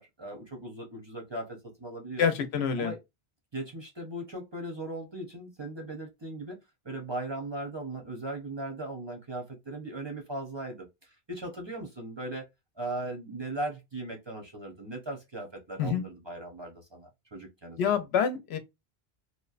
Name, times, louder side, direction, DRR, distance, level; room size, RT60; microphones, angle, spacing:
voice 1, 0.0-2.2 2.8-3.0 3.5-6.6 6.8-12.5 12.8-18.0, right 1 dB, 30° right, 0.6 m, -38 dB
voice 2, 2.2-2.9 15.8-16.0 17.8-18.6, left 7 dB, 90° left, 0.9 m, -27 dB
2.8 x 2.1 x 2.4 m
omnidirectional pair, 1.1 m